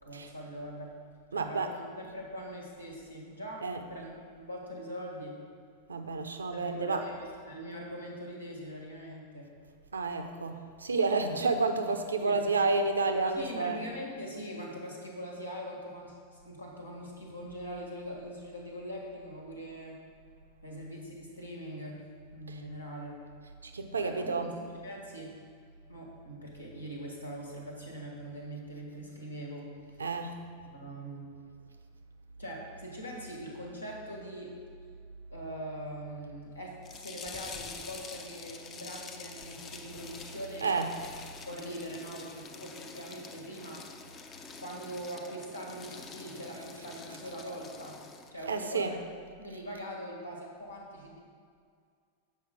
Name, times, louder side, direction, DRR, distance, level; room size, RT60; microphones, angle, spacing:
voice 1, 0.0-0.9 1.3-5.4 6.6-9.5 11.2-11.4 12.2-12.4 13.3-20.0 20.6-22.0 22.3-23.2 24.0-25.4 25.9-29.7 30.7-31.4 32.4-34.6 35.3-41.1 41.4-43.9 44.6-48.0 48.3-49.0 49.4-51.2, equal, 80° left, -1 dB, 1.5 m, -42 dB
voice 2, 1.3-1.7 3.6-3.9 5.9-7.0 9.9-13.8 23.6-24.6 30.0-30.4 40.6-41.0 48.5-48.9, right 3 dB, 75° right, 7 dB, 0.6 m, -30 dB
sound 1, 36.8-48.3, left 5 dB, 30° left, 0.6 m, -47 dB
7.6 x 5.4 x 5.0 m, 2.1 s
figure-of-eight pair, 90°, 0 cm